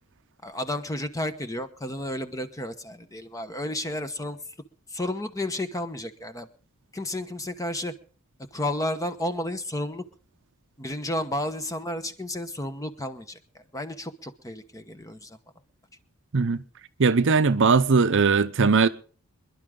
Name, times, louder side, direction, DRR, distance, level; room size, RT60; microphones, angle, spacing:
voice 1, 0.4-4.4 4.9-6.5 6.9-7.9 8.5-10.0 10.8-15.4, left 1 dB, 15° left, 1.0 m, -32 dB
voice 2, 17.0-18.9, right 4 dB, 60° right, 0.7 m, -19 dB
26.5 x 11.0 x 3.8 m
head